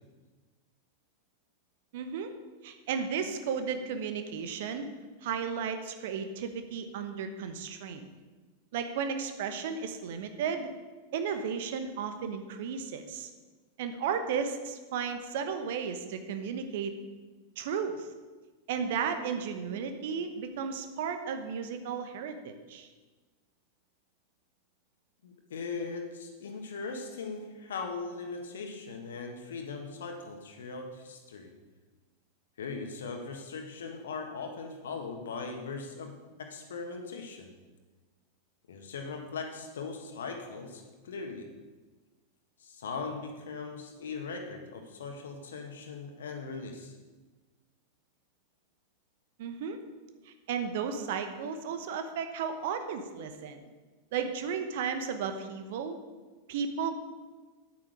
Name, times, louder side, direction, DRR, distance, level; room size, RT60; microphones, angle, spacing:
voice 1, 1.9-2.3 2.6-4.8 5.2-8.0 8.7-10.7 11.1-13.3 13.8-17.0 17.6-18.1 18.7-22.9 49.4-49.8 50.2-53.6 54.1-56.0 56.5-56.9, right 6 dB, 55° right, 8 dB, 1.0 m, -34 dB
voice 2, 25.2-31.5 32.6-37.5 38.7-41.5 42.6-47.0, left 4 dB, 65° left, 4 dB, 1.6 m, -39 dB
9.4 x 8.9 x 5.0 m, 1.3 s
figure-of-eight pair, 90°, 0 cm